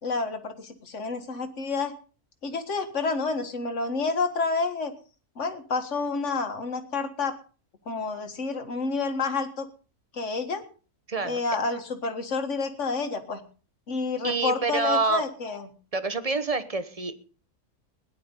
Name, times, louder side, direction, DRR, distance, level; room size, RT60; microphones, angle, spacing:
voice 1, 0.0-1.9 2.4-4.9 5.4-7.4 7.9-9.7 10.1-10.6 11.2-13.4 13.9-15.7, left 4 dB, 50° left, 7 dB, 2.0 m, -29 dB
voice 2, 11.1-11.4 14.2-15.2 15.9-17.1, right 4 dB, 25° right, 11 dB, 1.1 m, -27 dB
17.0 x 11.0 x 5.5 m, 0.38 s
omnidirectional pair, 1.6 m